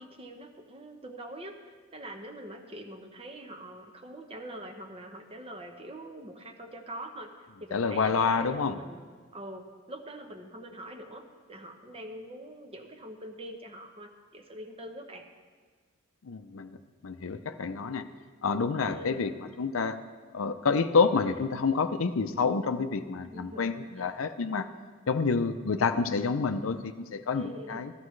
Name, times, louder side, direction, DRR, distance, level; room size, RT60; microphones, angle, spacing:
voice 1, 0.0-15.2 18.8-19.3 23.3-24.1 27.3-27.9, right 1 dB, 30° right, 5 dB, 0.9 m, -44 dB
voice 2, 7.7-8.7 16.2-16.7 17.0-18.1 18.4-19.3 19.6-20.0 20.3-24.7 25.1-27.9, left 5 dB, 90° left, 10 dB, 0.6 m, -28 dB
14.0 x 13.5 x 3.2 m, 1.5 s
head